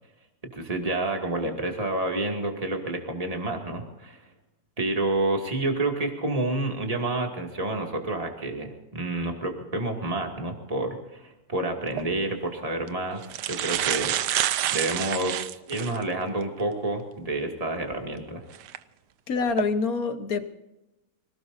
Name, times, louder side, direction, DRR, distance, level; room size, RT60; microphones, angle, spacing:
voice 1, 0.5-4.2 4.8-14.4 14.7-18.4, right 2 dB, 20° right, 2 dB, 2.4 m, -29 dB
sound 1, 11.9-12.1 12.9-13.0 13.2-16.0 16.6-16.7 18.5-18.8 19.4-19.6, right 12 dB, 85° right, 1.3 m, -28 dB
voice 2, 19.3-20.5, left 4 dB, 60° left, 10 dB, 1.5 m, -26 dB
25.5 x 18.5 x 2.7 m, 0.97 s
omnidirectional pair, 1.8 m